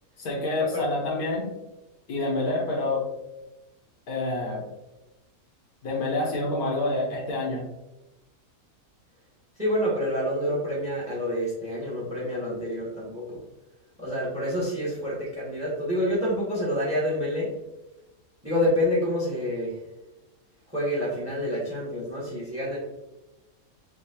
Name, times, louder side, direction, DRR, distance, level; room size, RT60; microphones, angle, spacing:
voice 1, 0.2-1.5 2.1-3.1 4.1-4.7 5.8-7.7, left 2 dB, 85° left, -3 dB, 1.9 m, -27 dB
voice 2, 9.6-13.4 14.0-17.5 18.4-19.8 20.7-22.8, equal, 10° right, -5 dB, 1.3 m, -28 dB
5.4 x 2.8 x 2.9 m, 1.0 s
omnidirectional pair, 1.5 m